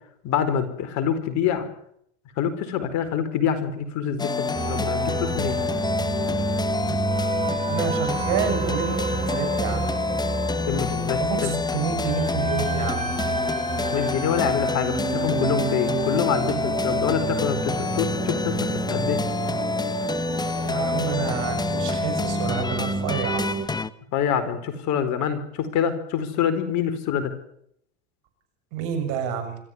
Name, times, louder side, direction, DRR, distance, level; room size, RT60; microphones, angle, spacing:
voice 1, 0.2-1.7 2.4-5.6 10.7-11.6 13.9-19.2 24.1-27.3, left 8 dB, 50° left, 9 dB, 4.4 m, -26 dB
sound 1, 4.2-23.9, left 4 dB, 10° left, 0.9 m, -27 dB
sound 2, 4.5-23.7, right 5 dB, 20° right, 2.7 m, -30 dB
voice 2, 7.7-10.0 11.2-13.1 20.6-23.6 28.7-29.6, right 8 dB, 60° right, 8 dB, 7.2 m, -29 dB
25.5 x 14.0 x 9.7 m, 0.71 s
hypercardioid pair, 105°, 36 cm